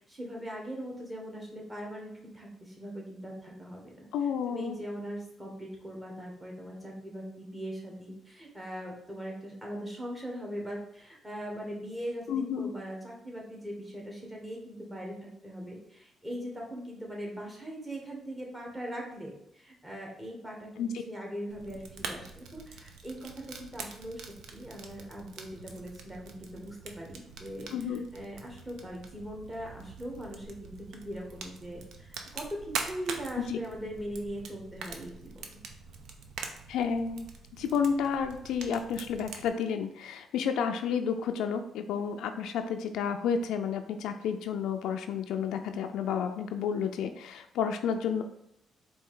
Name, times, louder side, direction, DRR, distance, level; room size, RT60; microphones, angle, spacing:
voice 1, 0.0-4.1 4.5-24.2 24.5-35.5, equal, 15° right, -1 dB, 1.4 m, -40 dB
voice 2, 4.1-4.8 12.3-12.7 20.8-21.0 27.7-28.1 33.5-33.6 36.7-37.3 37.5-48.2, left 7 dB, 85° left, 6 dB, 0.3 m, -31 dB
Fire, 21.5-39.5, right 5 dB, 80° right, 0.5 m, -44 dB
4.2 x 2.7 x 3.7 m, 0.76 s
cardioid pair, 90°, 0 cm